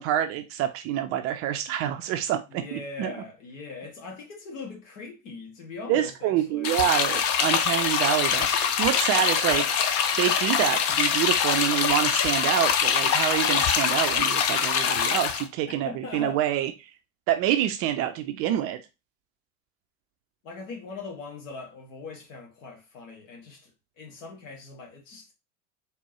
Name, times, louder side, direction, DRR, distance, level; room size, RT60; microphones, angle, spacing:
voice 1, 0.0-3.1 5.9-9.8 10.2-16.7 17.3-18.8, right 11 dB, 35° right, 0.5 m, -27 dB
voice 2, 2.5-6.9 15.8-16.4 20.4-23.7 24.0-25.3, left 4 dB, 60° left, 2.0 m, -40 dB
sound 1, 6.6-15.4, left 7 dB, 35° left, 0.7 m, -24 dB
4.3 x 3.6 x 3.0 m
figure-of-eight pair, 80°, 44 cm